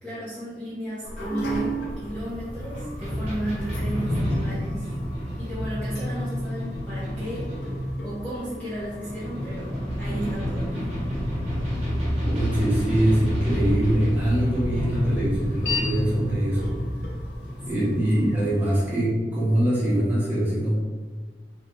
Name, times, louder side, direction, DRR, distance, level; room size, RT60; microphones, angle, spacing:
voice 1, 0.0-4.9 5.4-10.9 17.7-18.7, equal, 10° left, -11 dB, 1.0 m, -34 dB
sound 1, 1.0-18.9, equal, 70° left, 0.9 m, -36 dB
sound 2, 1.4-18.9, equal, 35° right, 1.3 m, -30 dB
voice 2, 12.2-16.7 17.7-20.8, right 1 dB, 10° right, -8 dB, 1.4 m, -23 dB
3.8 x 3.5 x 3.7 m, 1.5 s
head